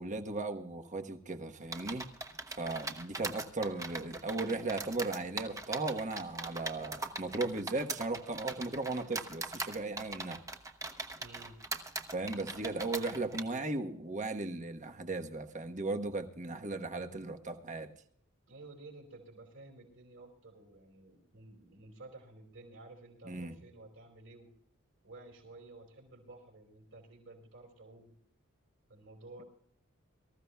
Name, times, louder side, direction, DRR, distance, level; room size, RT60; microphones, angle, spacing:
voice 1, 0.0-2.1 2.6-10.4 12.1-17.9 23.2-23.5, right 2 dB, 35° right, 1.2 m, -37 dB
sound 1, 1.7-13.4, right 3 dB, 15° right, 1.0 m, -41 dB
voice 2, 11.2-11.6 18.5-24.5 25.0-28.1 28.9-29.4, right 2 dB, 65° right, 4.6 m, -53 dB
24.5 x 14.5 x 2.3 m
head